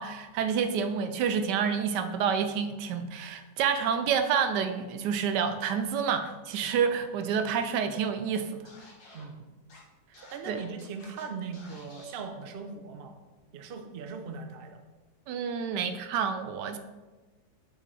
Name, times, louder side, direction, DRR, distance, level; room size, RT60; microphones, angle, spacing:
voice 1, 0.0-8.6 10.5-10.6 15.3-16.8, right 7 dB, 80° right, 9 dB, 1.2 m, -28 dB
Scratching (performance technique), 8.6-9.2 9.7-9.8 10.1-11.2 11.5-12.2, left 2 dB, 65° left, 1.8 m, -52 dB
voice 2, 9.1-9.4 10.2-13.2 13.5-14.8, right 5 dB, 60° right, 5 dB, 0.6 m, -39 dB
6.5 x 6.2 x 3.3 m, 1.2 s
omnidirectional pair, 1.8 m